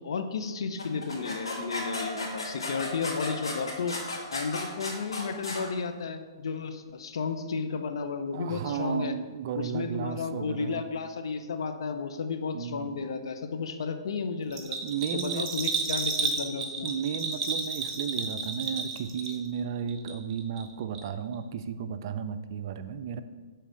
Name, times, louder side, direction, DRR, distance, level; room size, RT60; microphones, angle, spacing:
voice 1, 0.0-4.0 4.3-9.1 9.6-14.8 15.1-16.9, left 5 dB, 70° left, 7 dB, 0.7 m, -33 dB
sound 1, 0.8-5.6, left 2 dB, 90° left, 2.1 m, -34 dB
voice 2, 8.3-10.8 12.5-13.1 14.8-15.5 16.8-23.2, right 7 dB, 50° right, 11 dB, 0.5 m, -34 dB
Bell, 14.5-19.6 19.9-20.7 21.0-21.1, right 4 dB, 30° right, 1.0 m, -32 dB
6.5 x 3.9 x 6.2 m, 1.4 s
hypercardioid pair, 125°, 3 cm